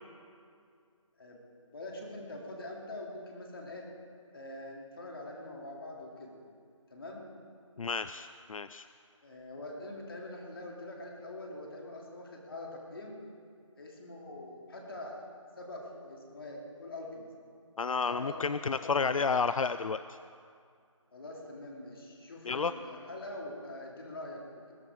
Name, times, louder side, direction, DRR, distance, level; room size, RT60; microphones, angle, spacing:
voice 1, 1.7-3.9 4.3-6.4 6.9-7.2 9.2-13.2 13.8-15.2 15.6-17.2 18.1-19.1 21.1-24.7, left 2 dB, 45° left, -1 dB, 2.7 m, -44 dB
voice 2, 7.8-8.9 17.8-20.2 22.5-22.7, left 5 dB, 85° left, 12 dB, 0.4 m, -31 dB
20.5 x 12.0 x 3.6 m, 2.3 s
figure-of-eight pair, 170°, 17 cm